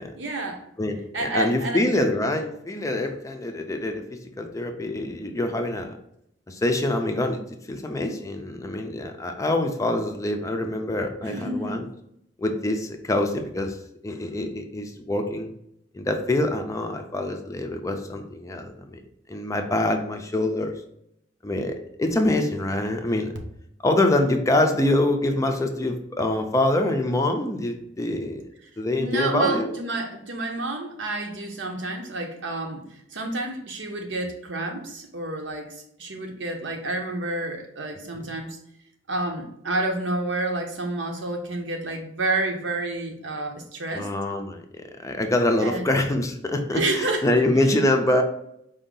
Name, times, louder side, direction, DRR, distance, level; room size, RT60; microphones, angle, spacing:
voice 1, 0.2-0.6 1.1-2.1 11.2-11.8 28.9-38.6 39.1-44.1 45.6-45.9 46.7-47.4, right 2 dB, 85° right, 3 dB, 0.9 m, -29 dB
voice 2, 0.8-6.0 6.5-7.4 7.7-11.8 12.4-13.8 14.0-15.5 15.9-19.0 19.3-20.7 21.4-23.3 23.8-28.4 28.8-29.7 43.9-44.6 45.0-48.2, left 1 dB, 15° left, 4 dB, 0.4 m, -25 dB
4.7 x 2.7 x 3.8 m, 0.76 s
head